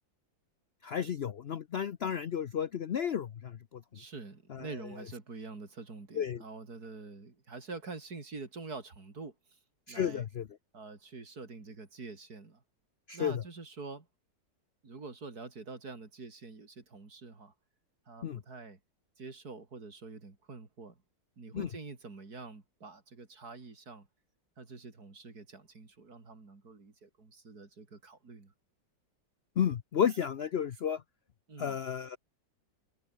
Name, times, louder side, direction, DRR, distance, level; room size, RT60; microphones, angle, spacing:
voice 1, 0.8-3.8 4.5-4.7 6.2-6.4 9.9-10.5 13.1-13.4 18.2-18.4 21.5-21.7 29.6-31.0 31.6-32.2, left 8 dB, 70° left, 0.6 m, -32 dB
voice 2, 3.9-9.6 9.9-10.3 10.7-12.6 13.1-14.1 14.8-17.5 18.1-18.8 19.2-21.0 21.4-24.1 24.6-28.5 31.5-31.8, right 4 dB, 55° right, 3.8 m, -46 dB
omnidirectional pair, 2.0 m